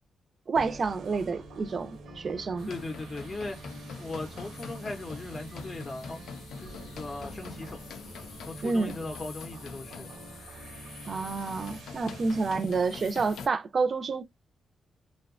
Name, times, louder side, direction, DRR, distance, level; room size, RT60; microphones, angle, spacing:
voice 1, 0.5-2.7 8.6-8.9 11.1-14.2, right 4 dB, 45° right, 0.4 m, -29 dB
sound 1, 0.5-12.5, right 2 dB, 85° right, 0.8 m, -46 dB
sound 2, 2.6-13.5, left 5 dB, 85° left, 0.5 m, -45 dB
voice 2, 2.7-3.6 4.0-6.2 6.6-8.0 8.5-10.1, left 2 dB, 30° left, 0.6 m, -38 dB
2.7 x 2.2 x 2.4 m
cardioid pair, 105°, 0 cm